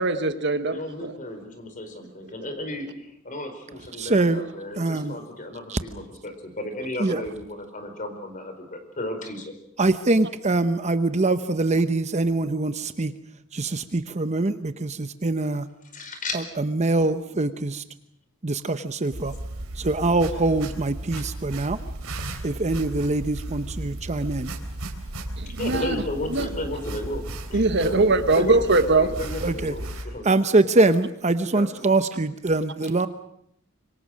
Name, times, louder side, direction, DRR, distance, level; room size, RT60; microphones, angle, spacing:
voice 1, 0.0-1.1 25.4-25.9 26.3-26.5 27.5-29.1, right 3 dB, 55° right, 10 dB, 1.5 m, -21 dB
voice 2, 0.7-9.5 15.9-16.4 25.5-28.6 28.9-30.7 31.5-31.7, left 1 dB, 40° left, 7 dB, 4.7 m, -34 dB
voice 3, 4.0-4.4 4.8-5.2 5.7-5.8 7.0-7.2 9.8-13.1 13.5-15.7 16.3-17.8 18.4-19.3 19.7-21.8 22.4-24.5 29.4-29.7 30.2-33.1, right 2 dB, 35° right, 10 dB, 0.8 m, -23 dB
sound 1, 19.1-30.0, right 1 dB, 80° right, 3.7 m, -35 dB
26.0 x 24.0 x 6.4 m, 0.73 s
head